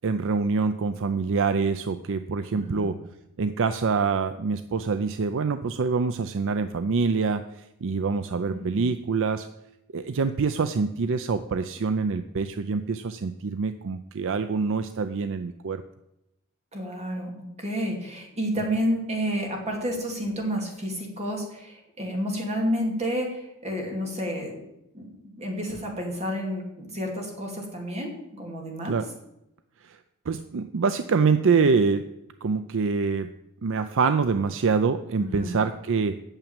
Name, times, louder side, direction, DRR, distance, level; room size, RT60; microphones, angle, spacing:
voice 1, 0.0-3.0 3.4-7.4 7.8-9.5 9.9-15.8 28.8-29.1 29.8-30.0 30.3-32.0 32.4-33.3 33.6-36.2, right 5 dB, 60° right, 11 dB, 0.5 m, -25 dB
voice 2, 2.5-2.9 8.5-8.9 16.7-17.3 17.6-24.5 24.9-25.1 25.4-28.1 28.4-29.0 35.2-35.6, equal, 30° right, 1 dB, 2.7 m, -30 dB
8.9 x 7.1 x 8.9 m, 0.87 s
head